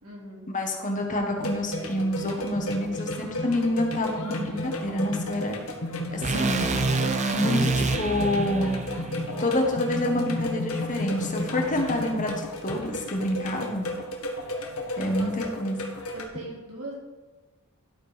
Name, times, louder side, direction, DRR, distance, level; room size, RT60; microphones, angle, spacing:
voice 1, 0.0-0.5 15.1-15.5 16.1-16.9, right 1 dB, 90° right, -3 dB, 3.2 m, -40 dB
voice 2, 0.5-5.5 6.1-6.6 7.3-8.8 9.4-13.9 15.0-15.8, left 1 dB, 35° left, 2 dB, 1.4 m, -27 dB
sound 1, 1.4-16.2, left 1 dB, 70° left, 1.3 m, -33 dB
sound 2, 6.2-10.4, right 3 dB, 35° right, 0.7 m, -28 dB
12.0 x 4.5 x 5.2 m, 1.3 s
head